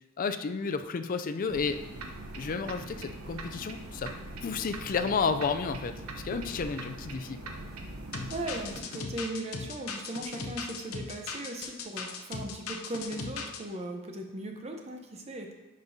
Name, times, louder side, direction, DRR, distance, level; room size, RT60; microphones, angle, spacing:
voice 1, 0.2-1.8 2.3-4.1 4.4-7.4, left 5 dB, 40° left, 9 dB, 0.4 m, -31 dB
sound 1, 1.5-8.8, right 2 dB, 85° right, 0.8 m, -42 dB
sound 2, 8.1-13.6, left 4 dB, 80° left, 0.7 m, -38 dB
voice 2, 8.3-15.5, right 1 dB, 30° right, 3 dB, 0.8 m, -38 dB
10.5 x 5.2 x 2.7 m, 1.1 s
head